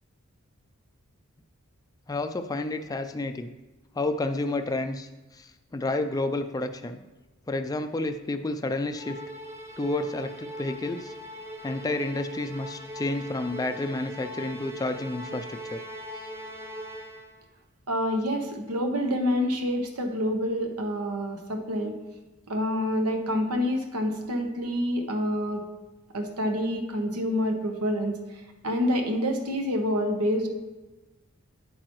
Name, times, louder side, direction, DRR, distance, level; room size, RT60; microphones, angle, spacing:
voice 1, 2.1-3.5 4.0-7.0 7.5-9.2 9.8-11.1 11.6-15.8, left 2 dB, 15° left, 7 dB, 0.3 m, -30 dB
Musical instrument, 8.9-17.4, equal, 10° right, 0.7 m, -40 dB
voice 2, 17.9-22.0 22.5-25.6 26.1-28.2 28.6-30.5, equal, 90° right, 5 dB, 1.0 m, -27 dB
8.7 x 8.5 x 3.1 m, 1.1 s
head